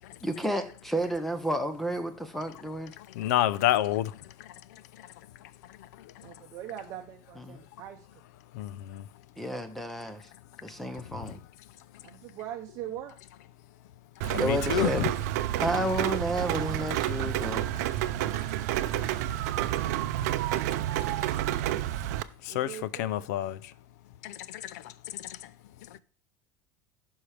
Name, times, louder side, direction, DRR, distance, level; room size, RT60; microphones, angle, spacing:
voice 1, 0.2-2.9 7.5-7.6 9.4-10.2 10.6-11.4 14.4-15.1 15.6-17.7, right 1 dB, ahead, 0.6 m, -31 dB
voice 2, 3.2-4.1 8.6-9.0 14.3-15.1 22.5-23.6 24.2-24.3 24.7-24.8, left 13 dB, 75° left, 0.5 m, -28 dB
voice 3, 6.2-8.1 12.0-13.2 22.5-23.3, right 11 dB, 35° right, 0.7 m, -41 dB
Rain, 14.2-22.2, right 13 dB, 70° right, 0.5 m, -29 dB
14.5 x 5.6 x 3.3 m
cardioid pair, 175°, 9 cm